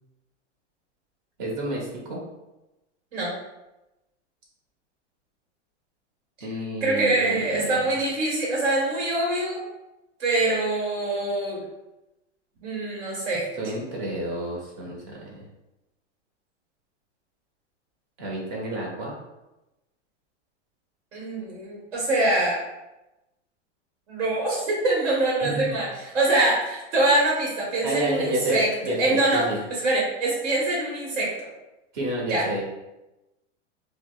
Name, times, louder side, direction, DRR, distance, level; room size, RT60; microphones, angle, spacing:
voice 1, 1.4-2.2 6.4-8.0 13.5-15.5 18.2-19.2 25.4-25.7 27.8-29.6 31.9-32.6, right 1 dB, 45° right, -2 dB, 1.1 m, -30 dB
voice 2, 6.8-9.6 10.2-11.6 12.6-13.4 21.1-22.6 24.1-28.7 29.0-29.4 29.8-31.5 32.3-32.4, right 2 dB, 65° right, -5 dB, 1.4 m, -24 dB
4.9 x 2.1 x 2.4 m, 0.99 s
supercardioid pair, 155°, 36 cm